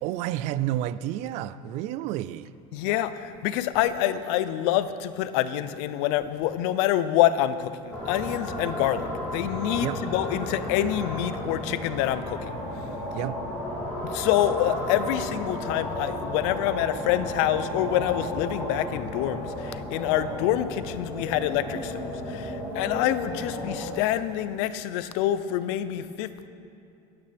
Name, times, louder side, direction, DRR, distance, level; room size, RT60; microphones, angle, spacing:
voice 1, 0.0-2.5 9.8-10.0 13.1-13.4, right 13 dB, 50° right, 0.4 m, -30 dB
voice 2, 2.7-12.5 14.0-26.5, left 12 dB, 75° left, 0.6 m, -26 dB
sound 1, 7.9-23.9, left 1 dB, 10° left, 3.0 m, -33 dB
23.5 x 9.0 x 3.5 m
cardioid pair, 155°, 14 cm